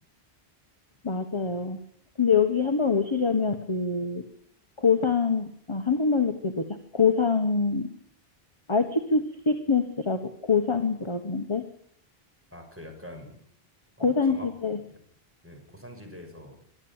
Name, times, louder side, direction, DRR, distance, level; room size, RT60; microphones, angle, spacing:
voice 1, 1.0-1.8 2.2-4.2 4.8-7.9 8.7-11.6 14.0-14.8, left 5 dB, 30° left, 6 dB, 1.3 m, -25 dB
voice 2, 12.5-13.4 14.0-14.5 14.9-15.0 15.4-16.6, left 1 dB, 10° right, 3 dB, 6.2 m, -44 dB
23.5 x 13.0 x 9.0 m, 0.67 s
omnidirectional pair, 1.0 m